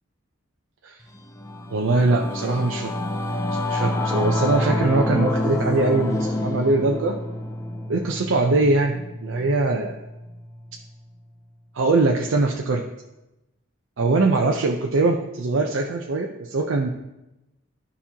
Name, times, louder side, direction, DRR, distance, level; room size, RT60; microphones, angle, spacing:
Singing / Musical instrument, 1.2-10.9, left 1 dB, 15° left, 0.4 m, -28 dB
voice 1, 1.7-2.9 3.5-7.2 7.9-10.0 11.7-12.8 14.0-16.9, right 3 dB, 80° right, 1 dB, 0.5 m, -22 dB
12.0 x 4.2 x 2.8 m, 0.97 s
head